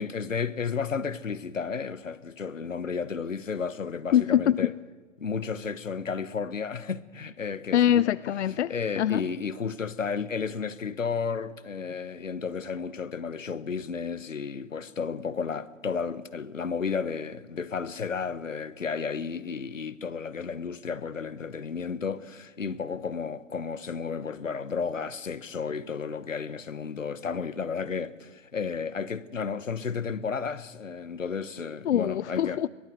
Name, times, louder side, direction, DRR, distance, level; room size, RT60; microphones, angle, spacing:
voice 1, 0.0-4.7 5.2-8.0 8.7-32.6, left 5 dB, 85° left, 1.1 m, -32 dB
voice 2, 4.1-4.7 7.7-9.2 31.8-32.7, left 11 dB, 65° left, 0.6 m, -24 dB
22.0 x 17.5 x 7.9 m
figure-of-eight pair, 125°, 37 cm